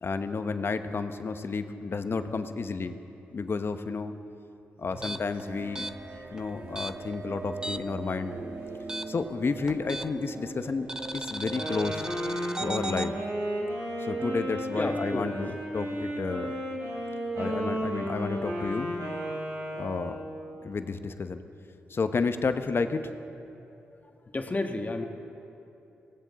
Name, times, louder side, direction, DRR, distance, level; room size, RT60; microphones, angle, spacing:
voice 1, 0.0-3.0 3.3-4.1 4.8-5.9 6.3-8.4 9.1-10.9 11.1-12.1 12.6-13.2 14.0-16.6 17.3-18.9 19.8-20.2 20.6-21.4 21.9-23.1, left 4 dB, 50° left, 9 dB, 0.9 m, -31 dB
sound 1, 4.9-8.0 8.3-10.4 10.9-13.1, right 1 dB, 15° right, 0.7 m, -37 dB
sound 2, 4.9-11.8, right 3 dB, 45° right, 1.2 m, -41 dB
Wind instrument woodwind instrument, 11.4-20.4, equal, 80° right, 3.9 m, -33 dB
voice 2, 14.7-15.3 16.3-16.5 24.3-25.0, left 2 dB, 30° left, 5 dB, 1.4 m, -31 dB
16.5 x 16.5 x 4.1 m, 2.8 s
supercardioid pair, 45°, 5 cm